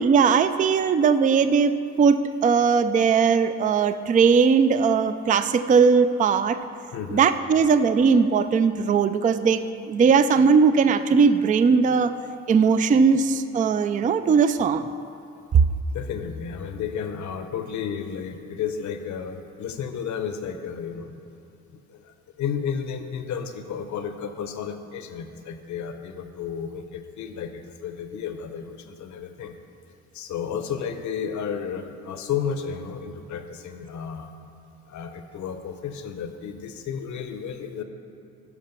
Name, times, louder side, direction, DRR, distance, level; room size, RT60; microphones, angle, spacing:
voice 1, 0.0-6.6 7.1-12.1 12.5-14.9, right 5 dB, 25° right, 11 dB, 0.3 m, -19 dB
voice 2, 6.9-7.3 15.9-21.2 21.7-29.5 30.1-34.3 34.9-37.8, left 7 dB, 70° left, 8 dB, 0.9 m, -32 dB
11.0 x 5.0 x 6.8 m, 2.7 s
cardioid pair, 90°, 30 cm